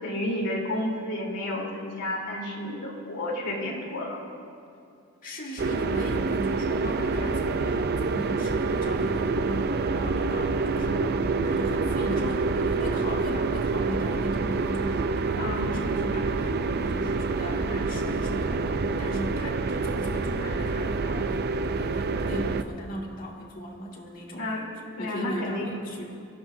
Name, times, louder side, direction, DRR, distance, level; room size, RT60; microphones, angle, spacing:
voice 1, 0.0-4.2 10.7-10.9 15.4-15.7 24.3-24.7 25.0-25.7 26.0-26.1, left 1 dB, 90° left, -2 dB, 3.6 m, -31 dB
voice 2, 5.2-11.2 11.4-24.5 25.0-26.2, equal, 40° left, -2 dB, 2.2 m, -38 dB
sound 1, 5.6-22.6, right 3 dB, 45° right, 0.5 m, -27 dB
24.0 x 15.0 x 2.7 m, 2.5 s
head